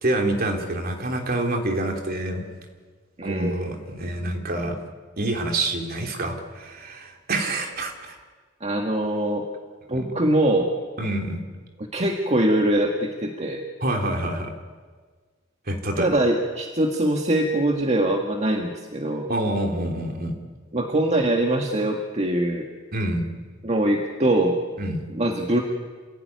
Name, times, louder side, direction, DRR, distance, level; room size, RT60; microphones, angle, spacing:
voice 1, 0.0-2.5 3.2-4.8 5.2-8.2 9.9-10.1 11.0-11.4 13.8-14.5 15.7-16.2 19.3-20.4 22.9-23.2 24.8-25.1, right 1 dB, 50° right, 3 dB, 3.2 m, -27 dB
voice 2, 3.2-3.5 8.6-9.5 9.9-10.7 11.9-13.6 16.0-19.3 20.7-22.7 23.6-24.6 25.1-25.6, right 1 dB, 35° right, 1 dB, 1.8 m, -23 dB
27.5 x 16.5 x 9.4 m, 1.5 s
head